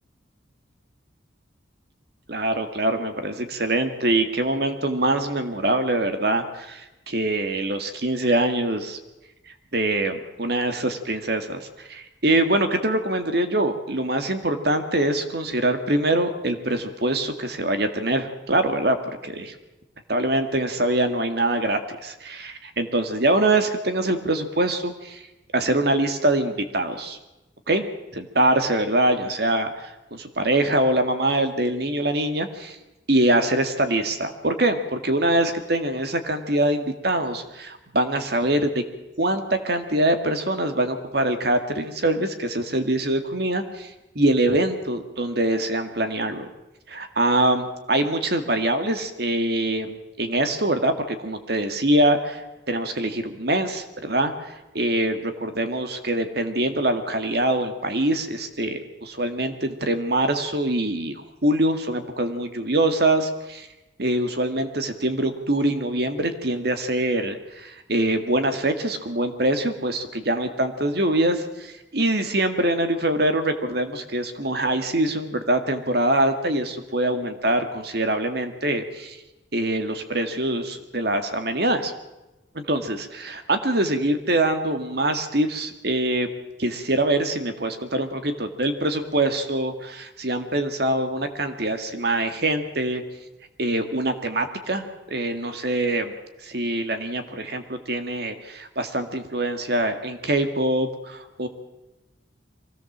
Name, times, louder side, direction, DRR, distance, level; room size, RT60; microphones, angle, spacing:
voice 1, 2.3-9.0 9.7-19.6 20.1-25.3 25.5-27.2 27.7-27.9 28.1-32.8 33.1-38.8 39.2-46.5 46.9-63.7 64.0-79.2 79.5-81.9 82.5-86.3 86.6-93.0 93.6-96.1 96.4-101.5, right 1 dB, 55° right, 7 dB, 2.0 m, -24 dB
23.5 x 17.0 x 7.4 m, 1.0 s
head